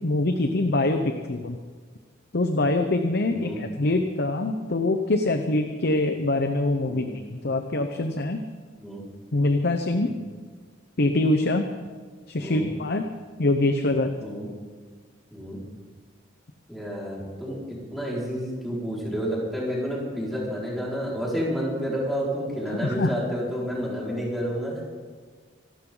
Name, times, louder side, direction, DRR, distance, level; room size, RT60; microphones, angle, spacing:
voice 1, 0.0-1.6 2.3-8.4 9.3-10.1 11.0-11.7 12.3-13.1 13.4-14.1 22.7-23.1, left 2 dB, 60° left, 6 dB, 0.9 m, -24 dB
voice 2, 3.3-3.6 6.9-7.1 8.8-9.0 10.0-10.1 12.4-12.7 14.2-14.5 15.3-15.6 16.7-24.8, equal, ahead, -6 dB, 5.1 m, -30 dB
25.5 x 12.0 x 4.0 m, 1.5 s
head